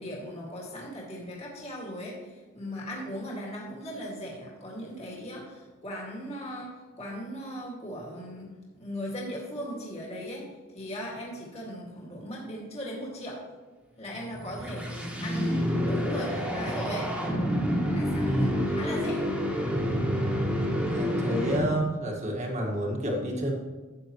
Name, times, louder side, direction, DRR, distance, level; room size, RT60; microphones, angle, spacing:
voice 1, 0.0-10.5 10.7-13.4 14.0-17.1 17.9-19.3, equal, 30° left, -3 dB, 2.1 m, -38 dB
sound 1, 14.2-22.0, equal, 5° right, 1.6 m, -28 dB
voice 2, 18.2-18.6 20.8-23.5, equal, 30° right, 0 dB, 1.7 m, -29 dB
13.0 x 8.6 x 3.1 m, 1.4 s
head